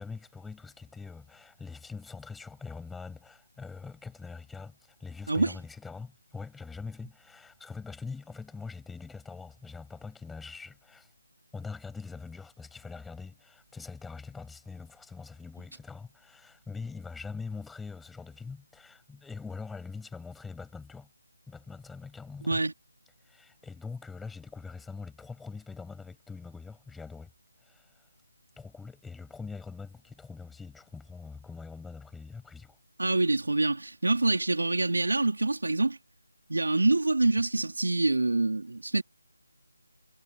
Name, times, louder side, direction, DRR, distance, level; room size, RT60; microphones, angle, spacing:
voice 1, 0.0-11.1 11.5-21.1 21.5-22.6 23.2-27.3 27.6-28.0 28.6-32.8, left 4 dB, 5° left, 6.8 m, -43 dB
voice 2, 22.4-22.7 33.0-36.0 36.5-39.0, right 2 dB, 80° right, 3.3 m, -26 dB
figure-of-eight pair, 170°, 0 cm